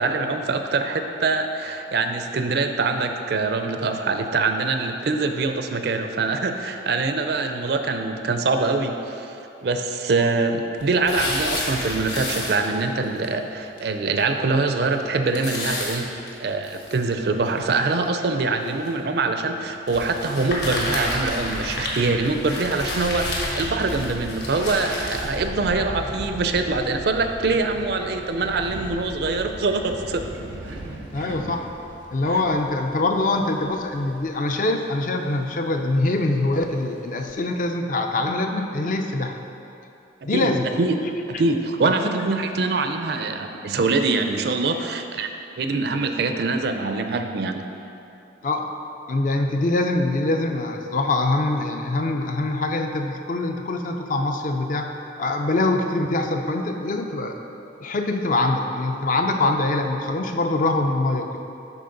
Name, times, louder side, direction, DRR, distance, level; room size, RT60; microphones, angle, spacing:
voice 1, 0.0-9.4 9.6-16.1 16.4-30.3 31.2-31.3 40.3-40.5 40.8-41.0 41.4-45.3 45.6-47.6 59.4-59.5, right 3 dB, 55° right, 6 dB, 0.4 m, -24 dB
sound 1, 10.8-12.9 13.2-13.3 13.8-13.9 14.2-14.3 15.3-16.9 17.6-17.7 18.6-18.9 19.9-25.3, left 1 dB, 60° left, 1.4 m, -30 dB
sound 2, 20.5-34.5 34.9-35.0 35.2-35.4 36.4-36.8 37.2-37.3 37.6-37.7, equal, 75° left, 1.3 m, -38 dB
Subway metro underground, 24.5-32.0, right 1 dB, 90° right, 0.8 m, -40 dB
voice 2, 31.1-31.7 32.1-39.4 40.2-40.7 41.8-41.9 48.4-48.7 49.1-54.9 55.2-57.4 57.8-61.4, left 2 dB, 45° left, 4 dB, 0.4 m, -24 dB
11.0 x 4.2 x 3.8 m, 2.8 s
head